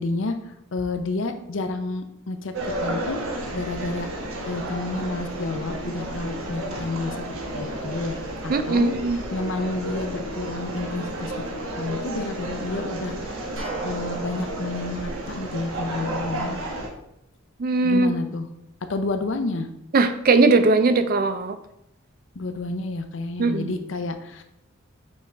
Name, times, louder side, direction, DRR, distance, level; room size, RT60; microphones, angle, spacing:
voice 1, 0.0-4.1 4.4-8.2 8.4-11.3 11.8-13.5 13.8-16.6 17.8-18.5 18.8-19.7 22.3-24.4, left 2 dB, 65° left, 8 dB, 0.6 m, -30 dB
sound 1, 2.5-16.9, right 1 dB, 85° right, 1.1 m, -32 dB
voice 2, 8.5-9.2 17.6-18.1 19.9-21.6 23.4-23.7, right 3 dB, 45° right, 10 dB, 0.4 m, -19 dB
sound 2, 13.6-16.4, right 2 dB, 65° right, 1.6 m, -37 dB
5.3 x 5.2 x 3.4 m, 0.81 s
head